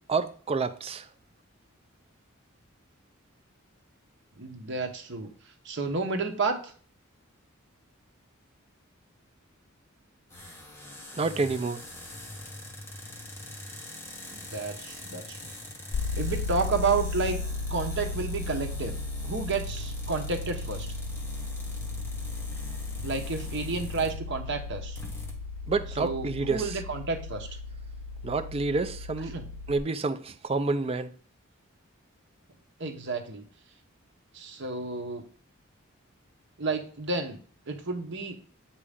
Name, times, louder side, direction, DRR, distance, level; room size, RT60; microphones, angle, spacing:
voice 1, 0.1-1.1 11.1-11.8 25.7-26.7 28.2-29.3 29.7-31.1, right 3 dB, 30° right, 0.4 m, -29 dB
voice 2, 4.4-5.3 5.6-6.7 14.3-15.5 16.1-17.4 17.7-18.9 19.2-20.9 23.0-25.0 26.0-27.5 29.3-29.4 32.8-33.4 34.3-35.2 36.6-37.4 37.7-38.4, right 4 dB, 55° right, 1.0 m, -31 dB
sound 1, 10.3-24.3 24.6-24.7 25.0-25.3, left 1 dB, 10° left, 1.1 m, -44 dB
sound 2, 15.9-29.8, left 3 dB, 60° left, 0.3 m, -35 dB
8.3 x 2.9 x 5.0 m
head